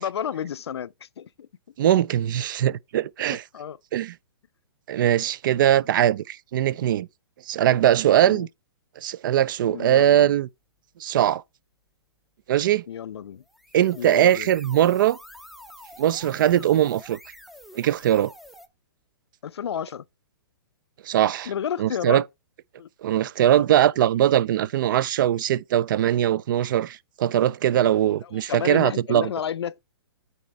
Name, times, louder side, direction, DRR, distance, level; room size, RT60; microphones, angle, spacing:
voice 1, 0.0-1.5 3.3-3.8 8.2-8.5 9.7-10.3 12.9-13.4 13.9-14.5 19.4-20.0 21.5-22.2 22.8-22.9 23.5-23.6 28.2-29.8, left 9 dB, 85° left, 0.5 m, -32 dB
voice 2, 1.8-3.4 3.9-4.1 4.9-7.1 7.5-8.5 9.0-10.5 11.0-11.4 12.5-12.8 13.7-15.2 16.0-17.2 17.7-18.3 21.0-21.5 21.8-22.2 23.0-29.3, right 11 dB, 50° right, 0.5 m, -21 dB
sound 1, 13.4-18.7, left 1 dB, ahead, 0.6 m, -47 dB
9.1 x 4.2 x 4.5 m
hypercardioid pair, 150°, 13 cm